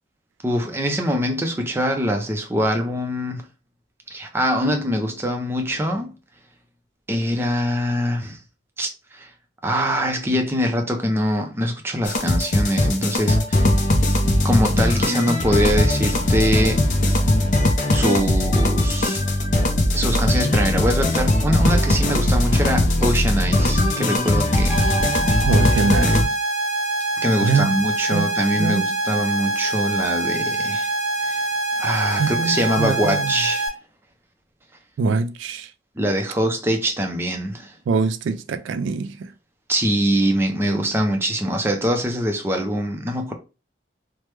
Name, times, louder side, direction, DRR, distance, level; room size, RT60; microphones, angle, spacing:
voice 1, 0.4-3.5 4.1-6.1 7.1-8.4 8.8-9.3 9.6-13.7 14.4-16.9 17.9-19.2 19.9-24.9 25.3-25.4 27.2-30.9 31.2-31.4 31.8-33.7 36.0-37.7 39.7-43.3, equal, 10° right, 0.4 m, -23 dB
sound 1, 12.0-26.2, left 1 dB, 40° left, 0.5 m, -19 dB
sound 2, 24.7-33.7, right 2 dB, 10° left, 1.4 m, -25 dB
voice 2, 25.5-26.4 27.4-27.9 28.1-28.8 32.1-33.3 35.0-35.7 37.9-39.3, right 4 dB, 80° right, 0.3 m, -24 dB
3.2 x 2.0 x 3.1 m
head